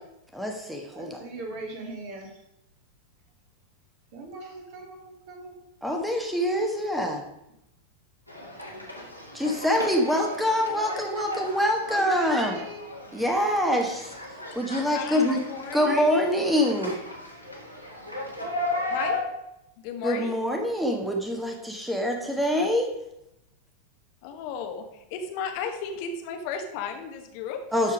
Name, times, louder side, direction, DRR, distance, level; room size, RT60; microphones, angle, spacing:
voice 1, 0.3-1.2 5.8-7.2 9.3-12.6 13.1-14.1 14.5-15.4 15.7-16.9 20.0-22.9 27.7-27.9, equal, 5° right, 2 dB, 1.4 m, -25 dB
voice 2, 0.9-2.3 4.1-5.5 11.9-12.9, right 2 dB, 45° right, 1 dB, 2.4 m, -40 dB
sound 1, 8.3-19.2, left 1 dB, 85° right, 1.9 m, -36 dB
voice 3, 14.8-16.1 18.8-19.2 19.8-20.4 22.2-22.3 24.2-27.6, left 6 dB, 45° left, 5 dB, 1.2 m, -34 dB
12.5 x 4.5 x 5.1 m, 0.85 s
figure-of-eight pair, 90°, 0 cm